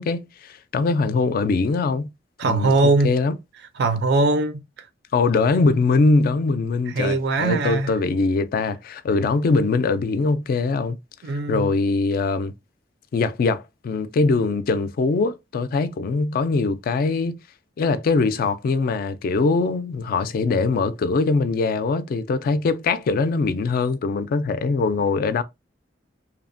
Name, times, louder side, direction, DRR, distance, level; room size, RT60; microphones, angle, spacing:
voice 1, 0.0-2.1 2.5-2.7 3.0-3.4 5.1-11.0 11.5-12.5 13.1-17.3 17.8-25.4, left 3 dB, 55° left, 0.3 m, -22 dB
voice 2, 2.4-3.1 3.8-4.9 6.9-7.9 11.2-11.7, right 3 dB, 65° right, 0.4 m, -21 dB
2.8 x 2.0 x 2.5 m
head